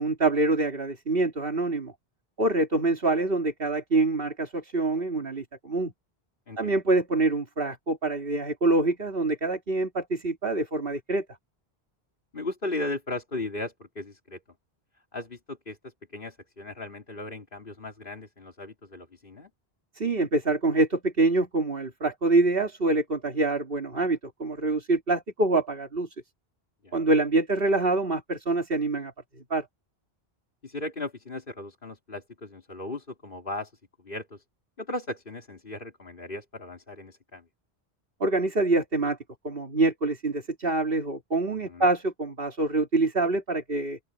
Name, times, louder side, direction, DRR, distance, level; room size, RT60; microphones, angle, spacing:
voice 1, 0.0-1.9 2.4-5.9 6.6-11.2 19.9-26.1 26.9-29.1 29.5-29.7 38.2-39.2 39.4-44.0, right 2 dB, 60° right, 3.1 m, -25 dB
voice 2, 6.5-6.8 12.3-14.4 15.1-19.5 26.8-26.9 30.6-33.7 34.0-34.4 34.8-37.4 41.7-41.9, left 2 dB, 55° left, 3.4 m, -37 dB
open air
omnidirectional pair, 1.1 m